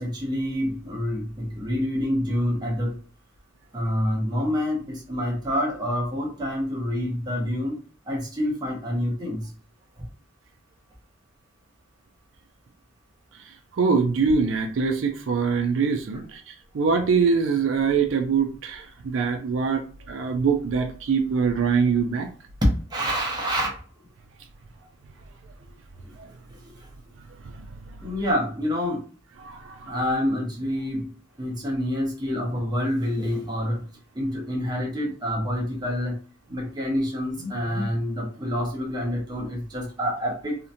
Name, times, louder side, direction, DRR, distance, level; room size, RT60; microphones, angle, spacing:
voice 1, 0.0-3.0 3.7-7.8 8.1-9.5 22.9-23.7 28.0-29.1 29.9-31.1 31.4-33.8 34.2-36.1 36.5-40.6, equal, 20° right, -2 dB, 0.7 m, -27 dB
voice 2, 13.3-22.3 26.2-26.3 27.4-28.3 29.4-30.0, right 5 dB, 70° right, 5 dB, 0.4 m, -24 dB
2.8 x 2.1 x 2.5 m, 0.40 s
head